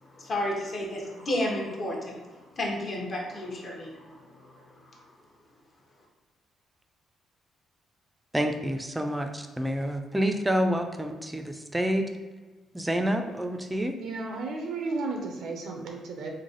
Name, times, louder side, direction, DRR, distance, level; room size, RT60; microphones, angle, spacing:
voice 1, 0.0-2.3 2.6-4.9, left 1 dB, 45° left, -1 dB, 0.8 m, -32 dB
voice 2, 8.3-12.1 12.7-13.9, equal, 10° right, 5 dB, 0.4 m, -28 dB
voice 3, 14.0-16.3, right 3 dB, 75° right, 2 dB, 0.5 m, -33 dB
3.2 x 2.1 x 3.8 m, 1.3 s
cardioid pair, 90°, 0 cm